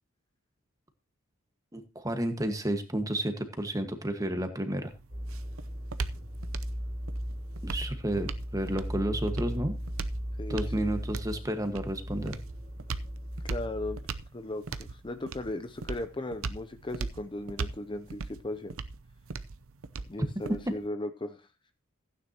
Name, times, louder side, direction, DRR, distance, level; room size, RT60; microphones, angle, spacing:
voice 1, 1.7-4.9 7.6-9.8 10.5-12.4, right 1 dB, 15° right, 7 dB, 1.5 m, -31 dB
sound 1, 4.8-20.9, right 4 dB, 80° right, 0.7 m, -40 dB
sound 2, 5.1-14.2, equal, 40° right, 3.1 m, -37 dB
voice 2, 10.4-11.0 13.5-14.0 14.3-18.7 20.1-21.5, left 2 dB, 25° left, 9 dB, 0.6 m, -37 dB
15.0 x 9.5 x 2.9 m, 0.27 s
head